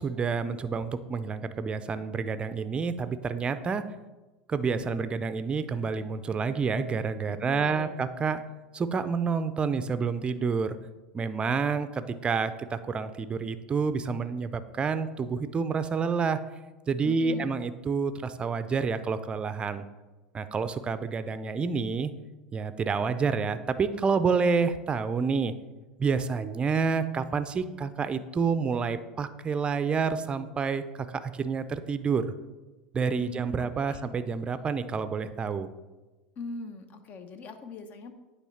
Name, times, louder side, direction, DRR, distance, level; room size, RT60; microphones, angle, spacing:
voice 1, 0.0-3.8 4.5-8.4 8.7-10.8 11.1-16.4 16.9-19.8 20.3-22.1 22.5-25.5 26.0-32.3 32.9-35.7, right 5 dB, 25° right, 12 dB, 0.5 m, -28 dB
voice 2, 7.3-8.0 17.0-17.5 33.2-34.0 36.4-38.1, left 4 dB, 40° left, 8 dB, 0.9 m, -41 dB
9.0 x 3.3 x 5.8 m, 1.2 s
hypercardioid pair, 95°, 4 cm